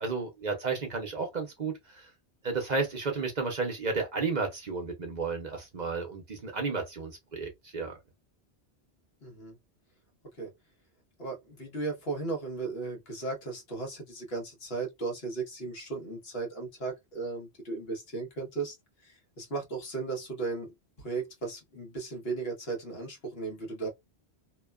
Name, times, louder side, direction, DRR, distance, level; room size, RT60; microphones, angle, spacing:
voice 1, 0.0-2.1 2.4-8.0, right 4 dB, 45° right, 0.8 m, -32 dB
voice 2, 9.2-9.6 10.3-10.5 11.2-18.8 19.0-20.7 21.0-23.9, right 4 dB, 65° left, 1.4 m, -36 dB
3.0 x 2.2 x 2.2 m
omnidirectional pair, 1.1 m